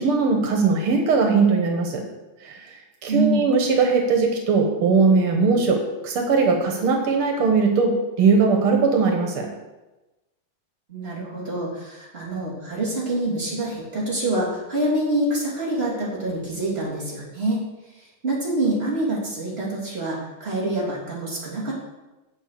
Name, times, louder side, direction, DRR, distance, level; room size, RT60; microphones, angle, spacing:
voice 1, 0.0-2.0 2.4-2.7 3.0-9.5, right 4 dB, 90° right, 2 dB, 2.2 m, -20 dB
voice 2, 3.1-3.4 10.9-17.6 18.2-21.7, right 1 dB, 25° right, -6 dB, 3.5 m, -26 dB
8.1 x 7.3 x 6.8 m, 1.1 s
omnidirectional pair, 2.3 m